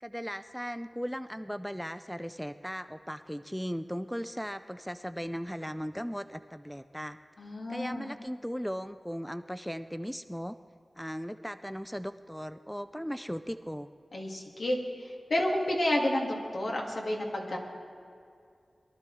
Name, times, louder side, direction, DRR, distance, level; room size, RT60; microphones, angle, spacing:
voice 1, 0.0-7.2 7.7-10.6 11.0-13.9, equal, ahead, 11 dB, 0.4 m, -37 dB
voice 2, 7.4-8.1 14.1-17.6, left 1 dB, 70° left, -1 dB, 2.2 m, -30 dB
22.5 x 12.0 x 3.3 m, 2.4 s
cardioid pair, 45°, 0 cm